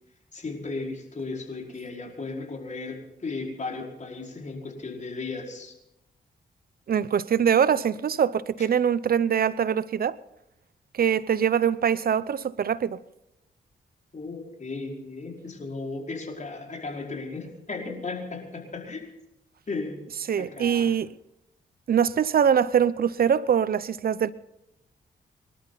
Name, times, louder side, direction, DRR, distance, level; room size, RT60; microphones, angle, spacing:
voice 1, 0.3-5.8 8.6-8.7 14.1-19.1 19.7-20.0 20.4-20.9, left 3 dB, 45° left, 5.2 m, -35 dB
voice 2, 6.9-10.2 10.9-13.0 20.3-21.1 21.9-24.3, right 8 dB, 60° right, 0.7 m, -23 dB
27.5 x 12.5 x 4.1 m
cardioid pair, 55°, 17 cm